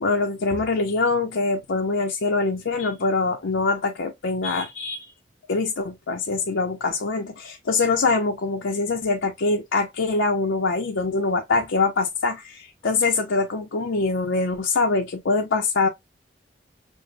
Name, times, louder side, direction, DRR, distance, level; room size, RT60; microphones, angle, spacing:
voice 1, 0.0-5.1 5.5-15.9, left 3 dB, 75° left, 0.6 m, -24 dB
6.2 x 2.1 x 2.5 m
head